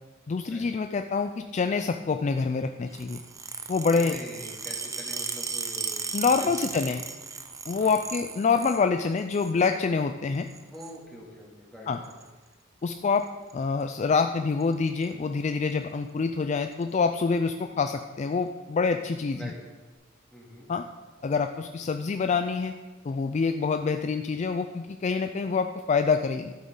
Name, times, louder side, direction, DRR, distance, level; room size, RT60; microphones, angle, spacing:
voice 1, 0.3-3.2 3.7-4.2 6.1-7.0 7.7-10.5 11.9-12.0 12.8-13.3 13.5-19.5 20.7-20.9 21.2-22.7 23.0-26.5, left 5 dB, 35° left, 7 dB, 0.3 m, -26 dB
sound 1, 2.9-8.8 9.2-9.7 10.5-11.0 12.0-12.3 13.2-13.5 13.8-13.9 14.2-14.3 14.6-15.1 15.7-15.8 16.7-16.8, right 5 dB, 15° right, 0.6 m, -36 dB
voice 2, 3.9-7.0 7.8-8.0 10.7-12.1 19.4-19.6 20.3-20.7, equal, ahead, -5 dB, 2.5 m, -44 dB
12.5 x 8.1 x 3.8 m, 1.2 s
head